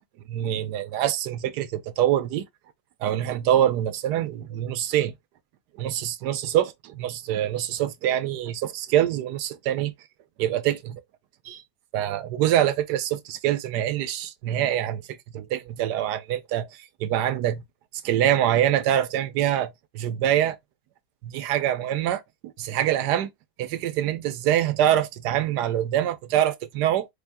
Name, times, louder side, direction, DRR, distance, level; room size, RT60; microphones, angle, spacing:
voice 1, 0.3-2.4 3.0-5.1 5.8-9.9 10.4-11.0 11.5-11.6 11.9-15.0 15.3-16.7 17.0-17.6 18.0-20.6 21.2-22.2 22.6-23.3 23.6-27.1, right 11 dB, 85° right, 1.2 m, -24 dB
4.3 x 2.6 x 3.4 m
omnidirectional pair, 1.8 m